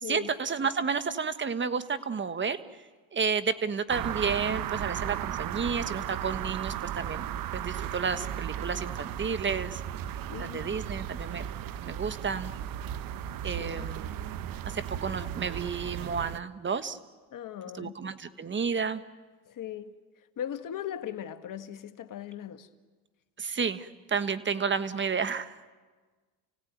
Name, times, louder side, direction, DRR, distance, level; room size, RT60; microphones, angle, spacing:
voice 1, 0.1-2.6 3.1-7.2 7.5-9.8 10.4-11.4 11.8-12.5 13.4-14.1 14.7-17.0 17.7-19.0 23.4-25.6, right 5 dB, 25° right, 1.4 m, -31 dB
sound 1, 3.9-16.4, right 10 dB, 55° right, 1.0 m, -35 dB
voice 2, 10.3-10.7 13.6-13.9 17.3-18.0 19.5-19.9 20.4-22.7, left 10 dB, 50° left, 1.6 m, -39 dB
30.0 x 17.0 x 9.4 m
supercardioid pair, 90°, 41 cm